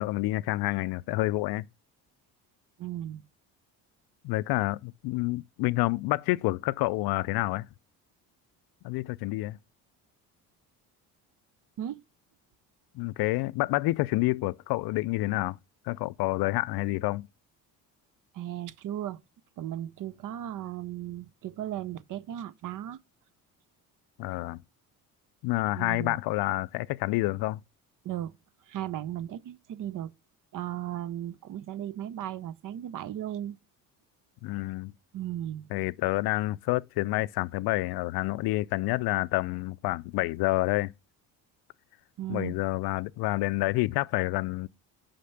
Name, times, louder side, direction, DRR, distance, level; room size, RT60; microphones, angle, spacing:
voice 1, 0.0-1.7 4.2-7.7 8.8-9.6 12.9-15.6 15.9-17.3 24.2-24.6 25.4-27.6 34.4-34.9 35.7-40.9 42.3-44.7, left 20 dB, 60° left, 0.5 m, -28 dB
voice 2, 2.8-3.2 11.8-12.0 18.3-19.2 19.6-23.0 25.7-26.2 28.0-28.3 28.7-30.1 30.5-33.6 35.1-35.7 42.2-42.5, right 12 dB, 45° right, 0.6 m, -36 dB
5.6 x 5.0 x 5.7 m
hypercardioid pair, 65°, 44 cm